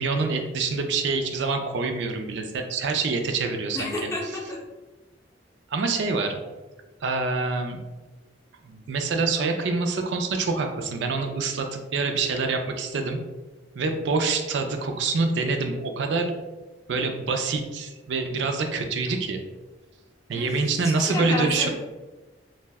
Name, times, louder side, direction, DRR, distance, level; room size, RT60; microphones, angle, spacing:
voice 1, 0.0-4.1 5.7-6.4 7.0-7.8 8.6-13.2 13.8-16.3 16.9-19.4 20.3-21.7, right 4 dB, 65° right, 4 dB, 0.4 m, -26 dB
voice 2, 3.7-4.6 20.3-21.7, left 2 dB, 15° left, -3 dB, 0.5 m, -31 dB
2.6 x 2.1 x 3.4 m, 1.1 s
head